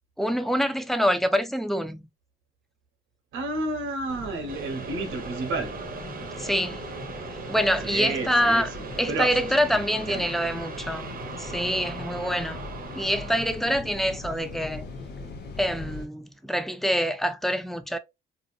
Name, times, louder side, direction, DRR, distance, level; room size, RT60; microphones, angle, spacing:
voice 1, 0.2-2.1 6.4-6.8 7.5-8.7 9.0-11.1 11.4-12.6 12.9-14.9 15.6-18.0, equal, ahead, 0.4 m, -25 dB
voice 2, 3.3-5.7 7.8-10.3, right 3 dB, 80° right, 0.9 m, -32 dB
sound 1, 4.1-16.1, left 3 dB, 55° left, 0.9 m, -40 dB
sound 2, 4.5-14.7, right 4 dB, 45° right, 0.8 m, -39 dB
2.6 x 2.5 x 2.3 m
cardioid pair, 90°, 20 cm